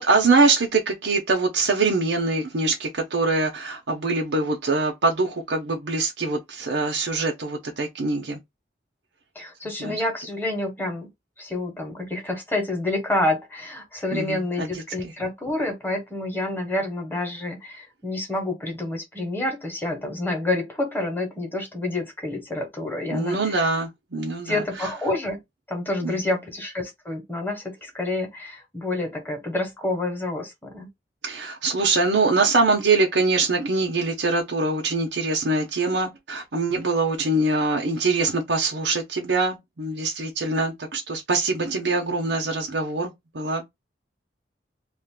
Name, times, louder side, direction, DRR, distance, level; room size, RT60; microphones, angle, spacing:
voice 1, 0.0-8.4 9.8-10.0 14.1-14.7 23.1-24.6 26.0-26.2 31.2-43.6, right 3 dB, 85° right, 0.8 m, -23 dB
voice 2, 9.3-11.1 11.4-23.7 24.4-25.4 25.7-30.9, left 2 dB, 10° left, 1.0 m, -28 dB
2.5 x 2.4 x 3.7 m
head